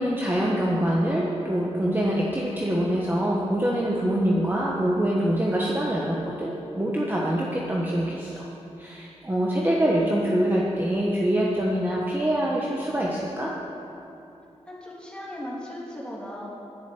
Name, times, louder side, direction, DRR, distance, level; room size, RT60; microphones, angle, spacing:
voice 1, 0.0-8.4 8.8-13.5, right 1 dB, 15° right, -4 dB, 1.2 m, -25 dB
voice 2, 14.7-16.4, left 1 dB, 10° left, -6 dB, 3.1 m, -37 dB
10.5 x 7.5 x 8.6 m, 2.8 s
wide cardioid pair, 105°, 12 cm